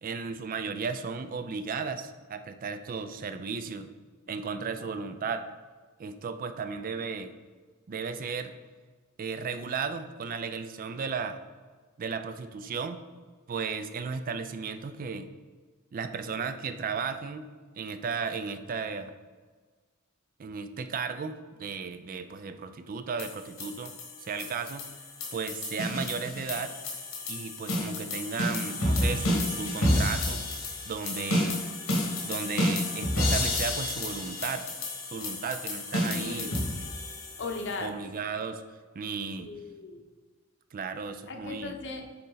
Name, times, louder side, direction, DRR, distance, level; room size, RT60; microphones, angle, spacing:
voice 1, 0.0-3.9 4.3-5.4 6.0-7.3 7.9-8.5 9.2-11.4 12.0-13.0 13.5-15.3 15.9-17.5 17.8-19.1 20.4-23.9 24.2-24.9 25.3-26.7 27.3-30.4 30.8-31.6 32.2-34.7 35.1-36.5 37.8-38.6 38.9-39.5 40.7-41.7, right 5 dB, 45° right, 10 dB, 0.4 m, -34 dB
sound 1, 23.2-37.7, left 1 dB, 90° left, 1.4 m, -30 dB
voice 2, 36.1-36.6 37.4-37.9 39.4-40.0 41.3-42.0, left 3 dB, 60° left, 4 dB, 0.8 m, -37 dB
6.6 x 4.1 x 3.9 m, 1.4 s
head